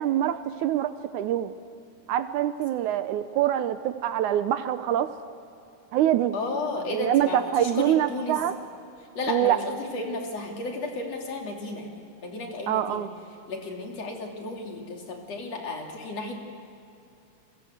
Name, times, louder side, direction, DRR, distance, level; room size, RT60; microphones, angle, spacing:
voice 1, 0.0-1.5 2.1-5.1 5.9-6.4 6.9-8.6 9.3-9.6 12.7-13.1, right 11 dB, 75° right, 11 dB, 2.1 m, -25 dB
voice 2, 6.3-8.4 9.2-11.9 12.2-13.0 13.5-16.3, left 2 dB, 50° left, 1 dB, 3.9 m, -33 dB
30.0 x 23.0 x 8.0 m, 2.6 s
omnidirectional pair, 3.8 m